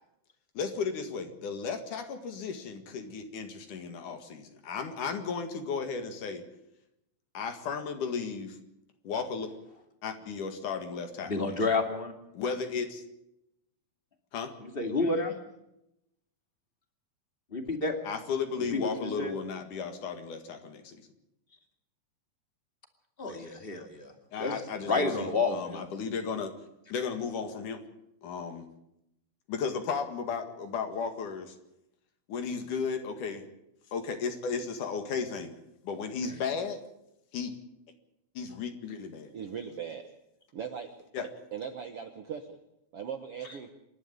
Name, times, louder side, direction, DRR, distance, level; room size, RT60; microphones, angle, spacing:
voice 1, 0.5-6.5 7.3-8.6 9.0-9.5 10.0-11.6 12.3-13.0 14.3-14.5 18.0-21.0 24.3-26.5 26.9-27.8 28.2-28.7 29.5-31.6 32.3-33.5 33.9-35.5 35.8-36.8 37.3-37.6 38.3-39.3 41.1-41.3, left 5 dB, 65° left, 7 dB, 3.2 m, -34 dB
voice 2, 11.3-12.1 14.6-15.3 17.5-18.0 18.7-19.3 23.2-24.1 24.4-24.5 24.8-25.8, left 3 dB, 20° left, 5 dB, 2.1 m, -29 dB
voice 3, 39.3-40.1 40.5-40.9 41.5-42.6 42.9-43.7, right 7 dB, 60° right, 7 dB, 1.6 m, -39 dB
27.5 x 12.0 x 8.7 m, 0.83 s
omnidirectional pair, 4.1 m